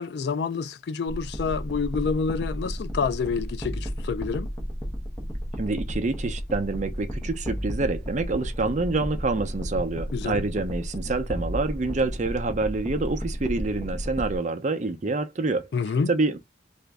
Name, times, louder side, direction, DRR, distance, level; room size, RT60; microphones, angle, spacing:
voice 1, 0.0-4.5 10.1-10.4 15.7-16.1, left 5 dB, 60° left, 0.3 m, -28 dB
sound 1, 1.1-14.4, equal, 15° left, 0.8 m, -33 dB
voice 2, 5.6-15.7 16.1-16.4, right 3 dB, 40° right, 0.5 m, -27 dB
3.0 x 2.6 x 3.4 m
head